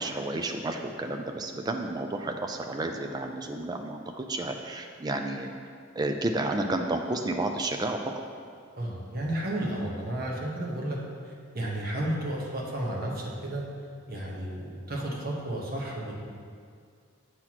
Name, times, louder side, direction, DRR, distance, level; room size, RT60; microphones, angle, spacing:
voice 1, 0.0-5.5 6.0-8.0, right 2 dB, 20° right, 4 dB, 0.4 m, -31 dB
voice 2, 8.8-11.0 11.2-13.6 14.1-16.1, right 1 dB, 45° right, -3 dB, 1.1 m, -32 dB
7.9 x 5.8 x 3.0 m, 2.2 s
head